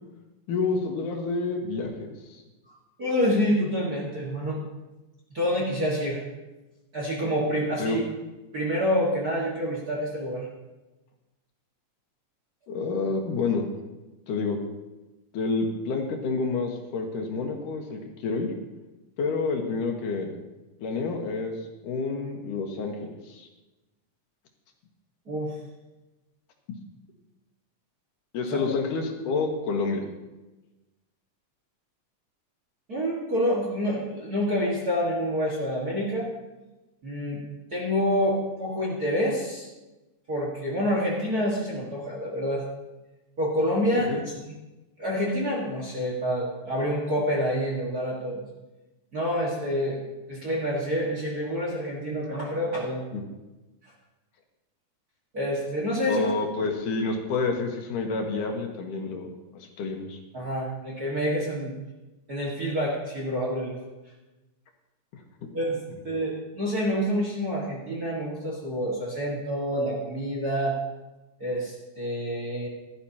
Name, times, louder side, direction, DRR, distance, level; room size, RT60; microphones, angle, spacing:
voice 1, 0.5-2.4 7.8-8.0 12.7-13.7 14.3-14.6 15.3-18.5 19.2-20.3 20.8-21.6 21.8-23.5 28.3-30.0 44.1-44.2 53.1-53.2 56.0-59.3 59.5-60.2, left 4 dB, 70° left, 2 dB, 2.6 m, -29 dB
voice 2, 3.0-4.6 5.3-6.2 6.9-8.0 8.5-10.5 25.3-25.5 28.4-28.6 32.9-36.3 37.0-37.4 37.7-39.7 40.3-42.6 43.4-44.2 45.0-48.4 49.1-50.0 50.3-53.0 53.8-53.9 55.3-56.3 60.3-61.7 62.3-63.8 65.5-65.8 66.0-70.8 71.4-72.7, equal, 40° right, -4 dB, 1.6 m, -27 dB
16.0 x 12.0 x 2.9 m, 1.1 s
omnidirectional pair, 4.0 m